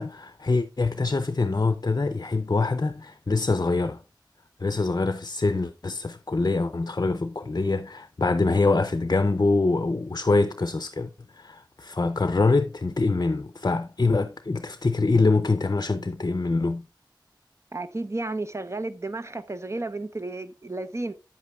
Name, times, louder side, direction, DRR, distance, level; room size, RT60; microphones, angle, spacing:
voice 1, 0.0-4.0 4.6-16.8, left 3 dB, 50° left, 0.5 m, -24 dB
voice 2, 17.7-21.1, right 2 dB, 35° right, 0.7 m, -32 dB
9.5 x 8.2 x 2.3 m
wide cardioid pair, 45°, 8 cm